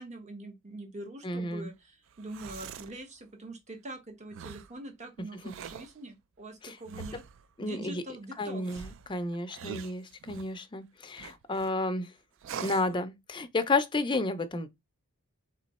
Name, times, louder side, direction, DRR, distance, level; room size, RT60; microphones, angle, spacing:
voice 1, 0.0-7.2 7.6-8.8, right 1 dB, 35° right, 1.0 m, -44 dB
voice 2, 1.2-1.7 6.6-6.7 7.6-8.0 8.4-12.1 12.6-14.7, left 2 dB, 20° left, 0.5 m, -31 dB
sound 1, 2.1-3.0 4.3-4.7 5.4-5.9 6.9-7.4 8.6-10.6 11.2-11.7 12.4-12.9, right 7 dB, 65° right, 0.4 m, -43 dB
3.6 x 3.0 x 4.1 m
head